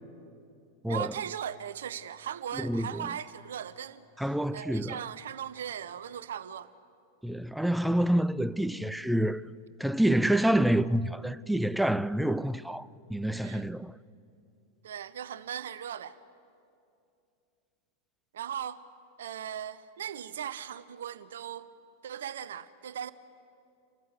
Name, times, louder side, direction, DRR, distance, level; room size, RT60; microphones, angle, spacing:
voice 1, 0.9-4.1 4.5-6.7 13.4-13.7 14.8-16.2 18.3-18.8 19.2-21.7 22.0-23.1, right 9 dB, 60° right, 0.6 m, -38 dB
voice 2, 2.5-3.1 4.2-5.0 7.2-9.4 9.8-13.9, right 1 dB, ahead, 0.5 m, -27 dB
27.5 x 14.0 x 8.3 m
figure-of-eight pair, 90°, 0 cm